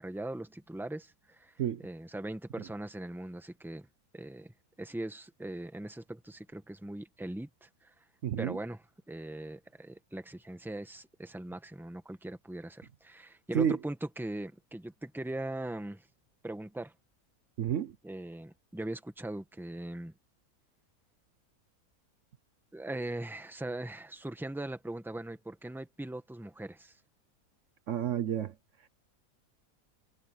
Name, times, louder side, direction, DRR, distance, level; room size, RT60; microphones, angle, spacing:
voice 1, 0.0-1.5 1.8-3.9 4.1-7.9 8.4-16.1 16.4-16.9 18.0-20.1 22.7-27.0, right 1 dB, ahead, 1.4 m, -40 dB
voice 2, 8.2-8.6 13.5-13.8 17.6-17.9 27.9-28.5, right 9 dB, 60° right, 1.1 m, -30 dB
omnidirectional pair, 1.5 m